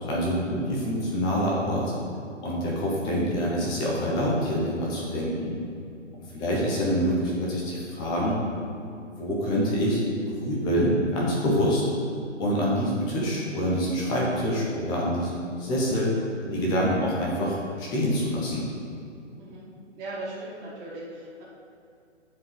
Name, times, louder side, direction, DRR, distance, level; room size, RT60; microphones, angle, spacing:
voice 1, 0.0-1.9 2.4-5.6 6.3-8.4 9.2-11.8 12.4-16.1 16.4-18.6, equal, 10° left, -5 dB, 0.9 m, -26 dB
voice 2, 20.0-21.4, right 2 dB, 20° right, -7 dB, 1.9 m, -38 dB
9.5 x 5.0 x 5.9 m, 2.5 s
hypercardioid pair, 150°, 38 cm